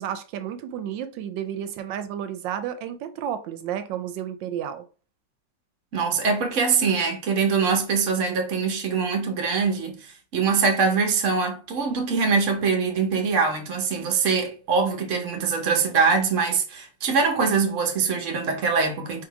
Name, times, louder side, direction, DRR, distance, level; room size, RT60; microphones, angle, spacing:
voice 1, 0.0-4.8, right 9 dB, 85° right, 1.3 m, -32 dB
voice 2, 5.9-19.3, right 5 dB, 50° right, 1.2 m, -23 dB
3.7 x 3.0 x 4.7 m
omnidirectional pair, 2.0 m